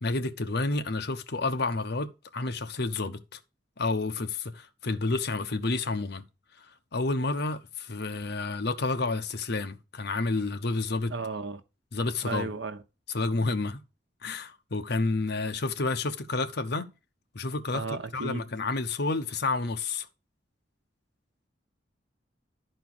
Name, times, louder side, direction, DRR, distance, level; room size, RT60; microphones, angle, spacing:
voice 1, 0.0-3.4 3.8-6.2 6.6-11.1 11.9-12.5 13.1-13.8 14.2-16.9 17.3-17.8 18.1-20.1, left 3 dB, 65° left, 1.0 m, -30 dB
voice 2, 11.1-11.6 12.2-12.8 17.7-18.5, right 3 dB, 75° right, 1.0 m, -34 dB
12.0 x 4.5 x 6.0 m
head